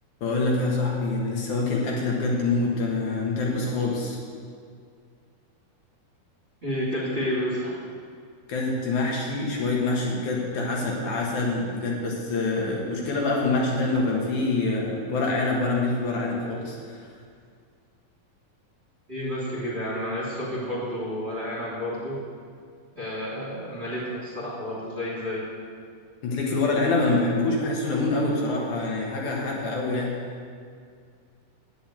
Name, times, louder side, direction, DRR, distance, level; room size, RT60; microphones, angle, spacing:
voice 1, 0.2-4.2 8.5-17.1 26.2-30.2, left 3 dB, 65° left, -2 dB, 2.8 m, -25 dB
voice 2, 6.6-7.7 19.1-22.1 23.0-25.4, equal, 20° right, -7 dB, 2.6 m, -30 dB
9.3 x 7.3 x 8.8 m, 2.2 s
omnidirectional pair, 3.9 m